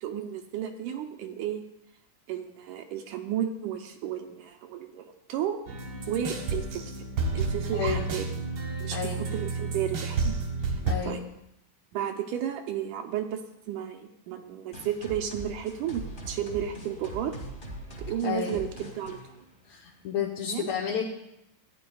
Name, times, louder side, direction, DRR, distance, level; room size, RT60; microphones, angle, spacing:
voice 1, 0.0-1.6 2.3-5.6 6.1-7.1 7.3-8.3 8.8-10.3 10.7-10.8 11.1-11.2 11.9-13.4 13.7-17.4 18.1-19.2 20.5-20.7, right 9 dB, 80° right, 5 dB, 2.1 m, -33 dB
sound 1, 5.7-10.9, right 4 dB, 55° right, 1.6 m, -31 dB
voice 2, 7.7-8.0 8.9-9.2 10.9-11.2 18.2-18.6 19.7-21.0, left 7 dB, 70° left, -3 dB, 1.9 m, -31 dB
sound 2, 14.7-20.2, right 1 dB, 25° left, 1.2 m, -42 dB
14.5 x 10.0 x 2.3 m, 0.82 s
omnidirectional pair, 3.8 m